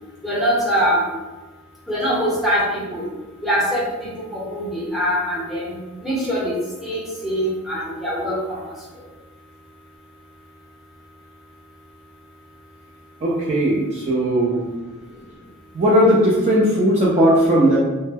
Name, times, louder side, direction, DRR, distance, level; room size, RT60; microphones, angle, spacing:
voice 1, 0.2-1.0 1.9-3.0 3.4-5.8 6.0-6.5 6.8-8.6, equal, ahead, -7 dB, 0.7 m, -23 dB
voice 2, 13.2-14.6 15.7-17.8, equal, 30° right, -6 dB, 0.3 m, -17 dB
2.1 x 2.1 x 3.3 m, 1.2 s
head